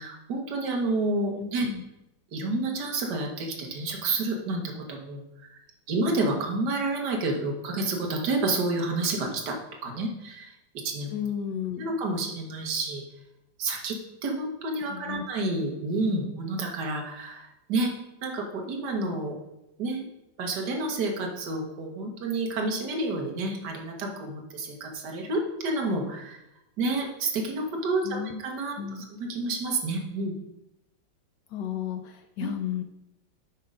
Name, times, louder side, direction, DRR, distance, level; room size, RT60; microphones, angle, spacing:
voice 1, 0.0-1.7 2.3-5.2 5.9-9.6 9.8-10.5 10.8-11.1 11.8-13.0 13.6-17.9 18.2-19.4 19.8-20.0 20.4-26.4 26.8-30.3 32.4-32.5, right 2 dB, 65° right, 1 dB, 1.8 m, -29 dB
voice 2, 1.4-1.8 11.1-11.9 14.9-15.2 28.0-28.3 28.8-29.0 31.5-32.8, left 9 dB, 70° left, 6 dB, 1.1 m, -33 dB
8.5 x 3.7 x 5.4 m, 0.87 s
omnidirectional pair, 2.1 m